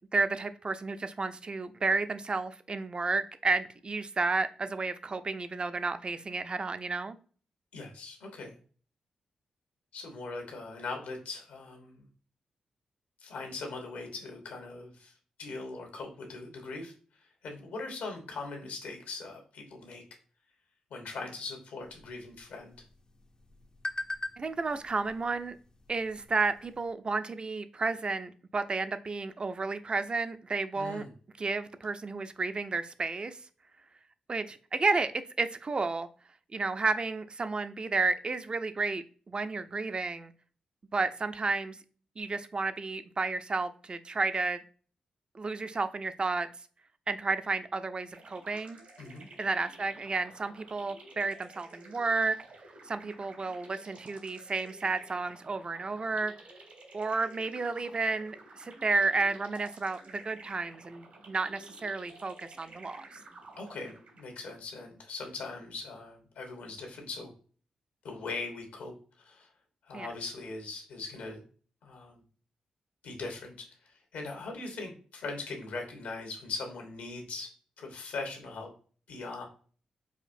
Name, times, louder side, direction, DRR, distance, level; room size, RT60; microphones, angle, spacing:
voice 1, 0.1-7.2 24.4-25.6 25.9-31.1 31.4-33.4 34.3-35.1 35.4-36.1 36.5-40.3 40.9-41.8 42.2-44.6 45.3-46.5 47.1-48.8 49.4-52.4 52.9-56.3 56.9-63.1 69.9-70.1, right 3 dB, 40° right, 11 dB, 0.4 m, -32 dB
voice 2, 7.7-8.5 9.9-12.1 13.2-15.1 15.4-20.0 20.9-22.7 30.7-31.1 49.0-49.3 63.6-67.3 68.0-69.5 69.8-71.4 71.8-72.2 73.0-77.5 77.8-78.7 79.1-79.5, left 3 dB, 80° left, 2 dB, 1.1 m, -40 dB
sound 1, 21.8-26.9, left 2 dB, 30° left, 0.4 m, -43 dB
sound 2, 48.1-64.5, right 2 dB, 70° right, 1.5 m, -52 dB
5.0 x 2.5 x 2.6 m, 0.42 s
supercardioid pair, 45°, 3 cm